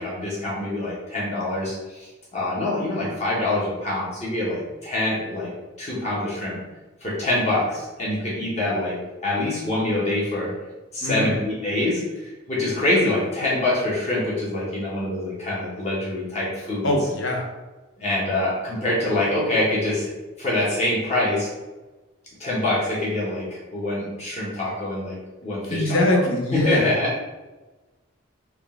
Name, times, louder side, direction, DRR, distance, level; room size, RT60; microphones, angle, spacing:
voice 1, 0.0-5.5 5.8-6.6 7.0-9.0 9.2-10.5 10.9-16.9 18.0-20.1 20.4-21.5 22.4-25.2 25.4-26.2 26.5-27.2, left 1 dB, 30° left, -7 dB, 0.9 m, -25 dB
voice 2, 11.0-11.3 16.8-17.5 25.7-26.9, left 1 dB, 65° left, 0 dB, 0.8 m, -22 dB
3.7 x 2.3 x 3.6 m, 1.2 s
head